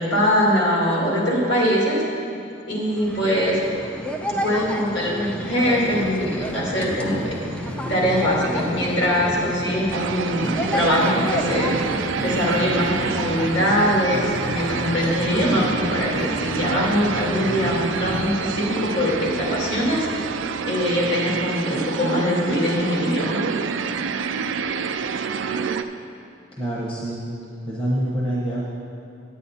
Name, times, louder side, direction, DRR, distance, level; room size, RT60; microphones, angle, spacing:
voice 1, 0.0-2.0 2.7-3.6 4.3-7.3 7.9-11.7 12.2-20.1 20.7-23.4, equal, 60° left, -5 dB, 2.6 m, -22 dB
sound 1, 2.9-21.3, equal, 5° left, 0.5 m, -33 dB
sound 2, 5.6-18.3, left 1 dB, 85° left, 0.9 m, -35 dB
sound 3, 9.9-25.8, right 6 dB, 70° right, 0.4 m, -28 dB
voice 2, 26.5-27.3 27.7-28.7, right 1 dB, 25° left, -6 dB, 1.2 m, -26 dB
9.8 x 9.5 x 4.2 m, 2.7 s
head